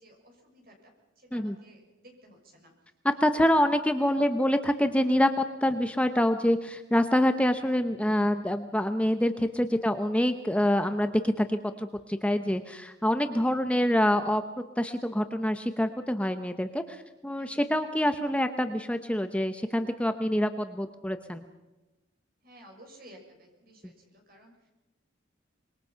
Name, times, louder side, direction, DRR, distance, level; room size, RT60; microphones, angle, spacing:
voice 1, 0.0-2.7 3.1-3.3 4.1-4.2 9.9-10.3 17.3-17.9 22.4-24.7, equal, 50° right, 1 dB, 6.6 m, -55 dB
voice 2, 3.0-14.4 14.8-21.4, left 1 dB, 5° left, 8 dB, 0.8 m, -26 dB
25.5 x 22.5 x 5.7 m, 1.1 s
head